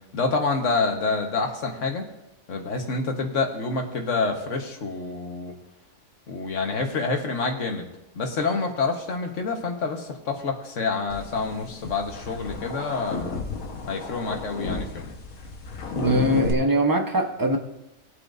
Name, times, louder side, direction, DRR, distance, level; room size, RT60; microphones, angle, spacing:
voice 1, 0.1-2.1 2.5-5.5 6.3-7.9 8.1-13.4 13.9-15.1, left 4 dB, 60° left, 3 dB, 1.6 m, -27 dB
sound 1, 11.1-16.5, left 4 dB, 85° left, 1.6 m, -33 dB
voice 2, 15.9-17.6, right 1 dB, 15° right, 3 dB, 0.9 m, -22 dB
19.5 x 8.4 x 2.6 m, 0.89 s
omnidirectional pair, 1.4 m